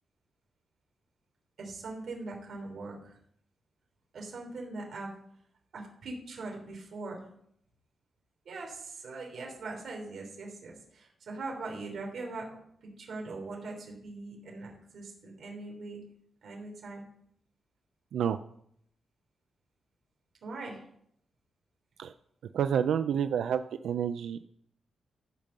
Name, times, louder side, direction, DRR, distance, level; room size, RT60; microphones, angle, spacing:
voice 1, 1.6-3.2 4.1-5.1 5.7-7.2 8.4-16.0 16.4-17.0 20.4-20.8, right 3 dB, 60° right, 0 dB, 3.3 m, -41 dB
voice 2, 22.5-24.4, right 8 dB, 85° right, 11 dB, 0.4 m, -29 dB
14.0 x 5.3 x 6.5 m, 0.70 s
wide cardioid pair, 155°, 0 cm